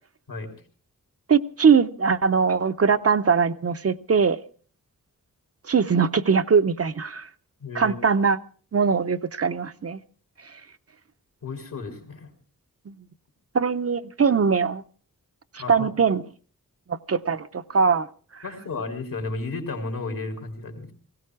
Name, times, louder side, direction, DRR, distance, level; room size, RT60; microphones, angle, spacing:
voice 1, 1.3-4.4 5.7-7.3 7.7-8.4 8.7-10.0 12.9-13.0 13.5-14.8 15.5-16.2 17.1-18.1, right 6 dB, 45° right, 10 dB, 0.7 m, -21 dB
voice 2, 7.6-8.0 11.4-12.3 15.6-15.9 18.4-20.9, left 3 dB, 70° left, 5 dB, 3.6 m, -33 dB
18.5 x 16.5 x 4.7 m, 0.43 s
wide cardioid pair, 100°, 34 cm